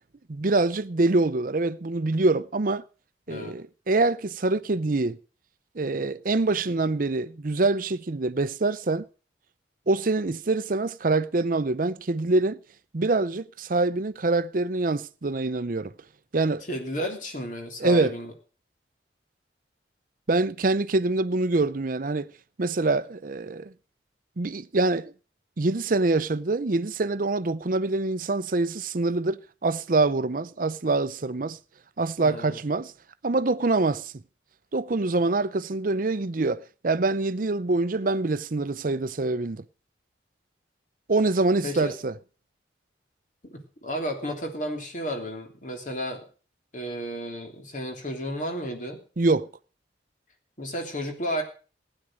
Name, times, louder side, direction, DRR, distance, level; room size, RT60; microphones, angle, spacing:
voice 1, 0.3-2.8 3.3-5.2 5.7-9.1 9.9-12.6 12.9-15.9 16.3-16.6 17.8-18.1 20.3-22.3 22.6-23.7 24.4-25.1 25.6-31.6 32.0-32.9 33.2-34.1 34.7-39.6 41.1-42.1 49.2-49.5, right 3 dB, 50° right, 0.6 m, -25 dB
voice 2, 3.3-3.6 16.7-18.3 32.2-32.6 41.6-41.9 43.4-46.3 46.7-49.0 50.6-51.4, equal, 45° left, 3.2 m, -33 dB
15.5 x 10.0 x 6.3 m
head